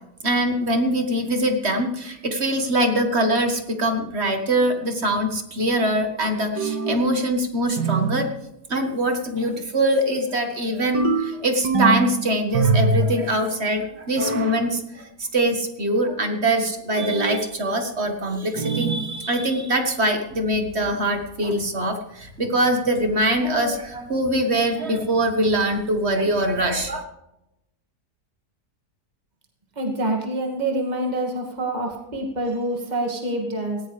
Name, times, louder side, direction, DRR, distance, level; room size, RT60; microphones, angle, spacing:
voice 1, 0.2-8.3 8.7-27.0, right 1 dB, 40° right, 5 dB, 1.8 m, -23 dB
sound 1, 6.6-7.1 7.8-8.3 10.9-12.1 12.5-13.2 14.1-14.6 16.9-17.5 18.6-19.1, right 3 dB, 90° right, 2.2 m, -23 dB
voice 2, 29.8-33.8, right 1 dB, 25° right, 1 dB, 2.3 m, -26 dB
18.5 x 16.0 x 3.3 m, 0.88 s
omnidirectional pair, 1.8 m